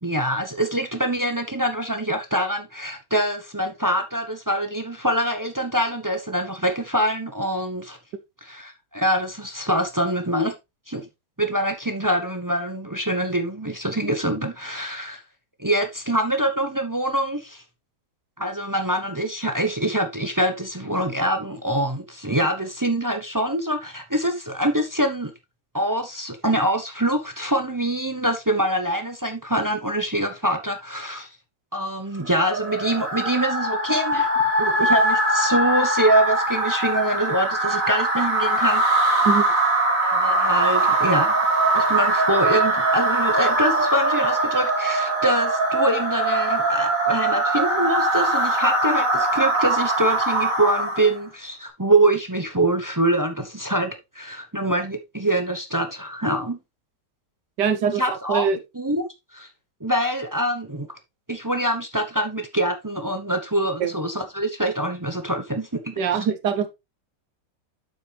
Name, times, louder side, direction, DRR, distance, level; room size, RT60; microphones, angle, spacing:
voice 1, 0.0-8.0 8.4-10.5 10.9-11.1 11.4-15.2 15.6-17.6 18.4-25.3 25.7-31.3 31.7-34.3 34.6-38.8 40.0-41.4 41.7-56.6 57.8-58.5 58.8-59.0 59.3-59.5 59.8-60.9 61.3-65.9, right 1 dB, 25° right, 0.4 m, -24 dB
sound 1, 32.3-51.2, right 2 dB, 50° right, 3.1 m, -22 dB
voice 2, 57.6-58.0 58.3-58.6 63.8-63.9 66.0-66.7, right 7 dB, 75° right, 1.6 m, -22 dB
7.4 x 6.1 x 3.3 m
omnidirectional pair, 1.8 m